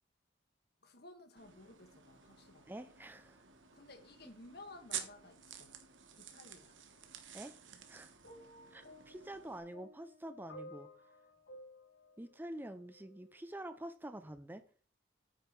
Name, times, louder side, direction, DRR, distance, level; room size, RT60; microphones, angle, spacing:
voice 1, 0.8-2.7 3.7-5.7 6.2-6.8, left 2 dB, 55° left, 1.4 m, -56 dB
sound 1, 1.4-9.6, right 9 dB, 80° right, 1.3 m, -50 dB
voice 2, 2.7-3.4 7.3-7.5 7.9-8.1 8.7-10.9 12.2-14.6, right 1 dB, 10° right, 0.5 m, -47 dB
sound 2, 8.2-13.3 14.2-14.4, equal, 70° left, 4.2 m, -56 dB
8.9 x 5.1 x 5.6 m
head